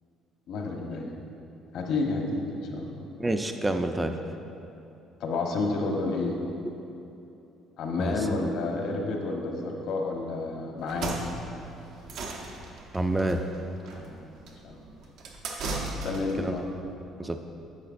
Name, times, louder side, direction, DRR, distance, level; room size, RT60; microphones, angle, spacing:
voice 1, 0.5-1.1 1.7-3.0 5.2-6.4 7.8-11.2 13.9-14.2 14.6-14.8 15.8-16.6, left 3 dB, 70° left, 1 dB, 1.0 m, -30 dB
voice 2, 3.2-4.1 8.0-8.3 12.9-13.4 16.4-16.6 17.2-17.4, right 1 dB, 10° right, 6 dB, 0.3 m, -28 dB
sound 1, 10.8-16.5, right 2 dB, 75° right, 0.9 m, -36 dB
10.5 x 6.8 x 2.6 m, 2.8 s
cardioid pair, 125°, 0 cm